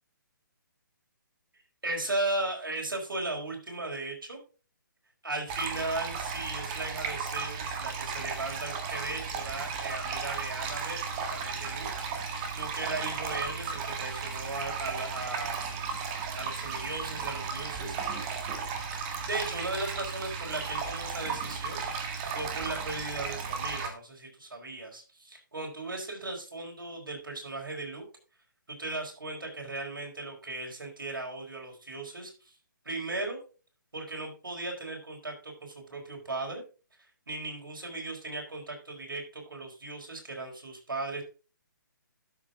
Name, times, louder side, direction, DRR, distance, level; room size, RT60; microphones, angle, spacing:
voice 1, 1.8-4.4 5.2-11.9 12.5-15.6 16.4-18.0 18.9-28.0 28.7-32.5 32.8-33.4 33.9-36.6 37.3-41.2, right 2 dB, 80° right, 1 dB, 4.5 m, -37 dB
sound 1, 5.5-23.9, right 5 dB, 25° right, 1.7 m, -35 dB
12.0 x 6.0 x 3.7 m, 0.35 s
hypercardioid pair, 145°, 11 cm